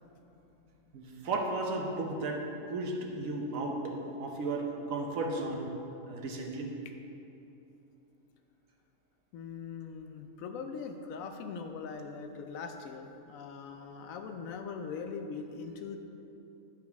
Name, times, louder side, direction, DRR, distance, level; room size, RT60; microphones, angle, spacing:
voice 1, 0.9-2.4 2.7-5.6 6.1-6.7, right 2 dB, 75° right, 1 dB, 1.2 m, -34 dB
voice 2, 9.3-16.0, left 5 dB, 75° left, 6 dB, 1.0 m, -41 dB
10.0 x 4.7 x 3.5 m, 2.9 s
omnidirectional pair, 1.4 m